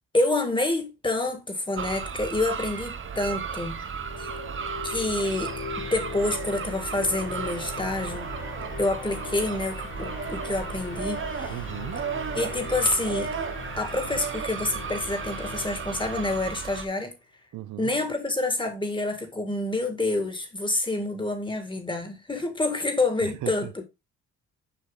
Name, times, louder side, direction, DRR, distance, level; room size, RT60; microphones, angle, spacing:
voice 1, 0.1-3.8 4.2-4.3 4.8-8.3 8.8-11.6 12.3-13.3 13.8-17.1 17.8-23.8, left 2 dB, 15° left, 2.3 m, -28 dB
sound 1, 1.8-16.9, right 6 dB, 40° right, 1.0 m, -34 dB
sound 2, 3.8-16.9, left 5 dB, 40° left, 1.8 m, -40 dB
voice 2, 11.5-12.0 17.5-17.9 23.2-23.8, right 14 dB, 75° right, 0.8 m, -37 dB
7.0 x 5.2 x 4.0 m
cardioid pair, 90°, 30 cm